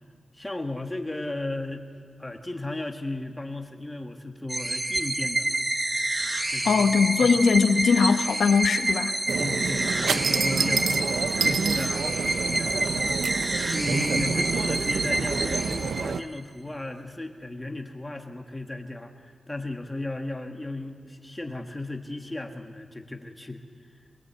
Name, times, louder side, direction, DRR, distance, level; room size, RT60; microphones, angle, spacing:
voice 1, 0.3-1.9 2.2-5.6 6.5-6.8 7.2-7.3 9.4-23.6 23.9-24.0, left 2 dB, 10° left, 3 dB, 1.7 m, -35 dB
sound 1, 4.5-16.4, right 1 dB, 20° right, 1.3 m, -28 dB
voice 2, 6.6-9.1, left 5 dB, 75° left, 5 dB, 1.1 m, -21 dB
sound 2, 9.3-16.2, right 6 dB, 90° right, 0.6 m, -28 dB
24.0 x 22.0 x 8.3 m, 2.2 s
wide cardioid pair, 160°, 0 cm